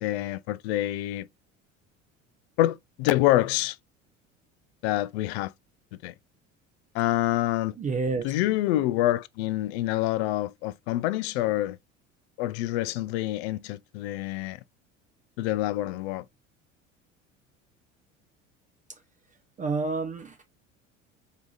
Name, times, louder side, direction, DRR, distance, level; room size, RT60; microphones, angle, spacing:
voice 1, 0.0-1.3 2.6-3.8 4.8-5.5 6.0-6.1 6.9-7.8 8.2-11.8 12.4-14.6 15.4-16.3, left 15 dB, 55° left, 0.5 m, -26 dB
voice 2, 7.8-8.3 19.6-20.4, right 4 dB, 20° right, 0.5 m, -29 dB
4.6 x 2.8 x 2.3 m
figure-of-eight pair, 65°, 39 cm